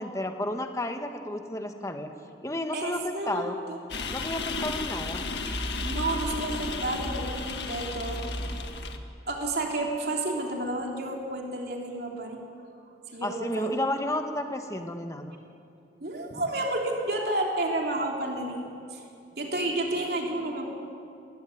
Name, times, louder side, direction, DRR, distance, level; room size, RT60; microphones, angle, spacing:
voice 1, 0.0-2.1 2.4-3.6 4.1-5.3 13.2-15.4, left 1 dB, 20° left, 5 dB, 1.4 m, -32 dB
voice 2, 2.7-3.4 3.7-3.8 5.5-8.6 9.3-12.4 13.1-13.7 16.0-19.0 19.4-20.7, right 2 dB, 60° right, 0 dB, 3.3 m, -31 dB
sound 1, 3.9-9.0, left 2 dB, 80° left, 1.7 m, -33 dB
21.0 x 16.5 x 9.4 m, 2.5 s
head